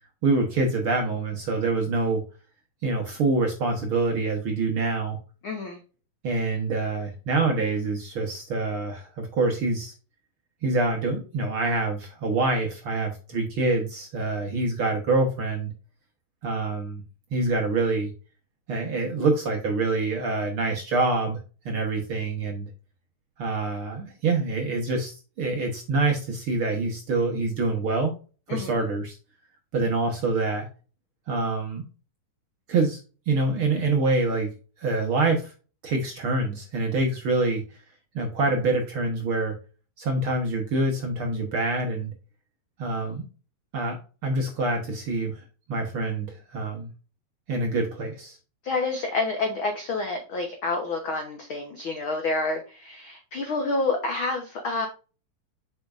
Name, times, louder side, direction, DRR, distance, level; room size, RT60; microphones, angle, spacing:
voice 1, 0.2-2.2 2.8-5.2 6.2-9.9 10.6-15.7 16.4-17.0 17.3-18.1 18.7-21.4 21.6-22.7 23.4-28.1 28.5-29.2 29.7-30.7 31.3-31.8 32.7-33.0 33.3-34.5 34.8-35.5 35.8-37.6 38.1-39.5 40.0-42.1 42.8-43.2 43.7-45.4 45.7-46.3 46.5-46.9 47.5-48.4, right 3 dB, 55° right, 2 dB, 1.6 m, -26 dB
voice 2, 5.4-5.8 28.5-28.8 48.6-54.9, left 3 dB, 70° left, 4 dB, 1.2 m, -28 dB
7.1 x 6.1 x 2.5 m, 0.34 s
omnidirectional pair, 3.8 m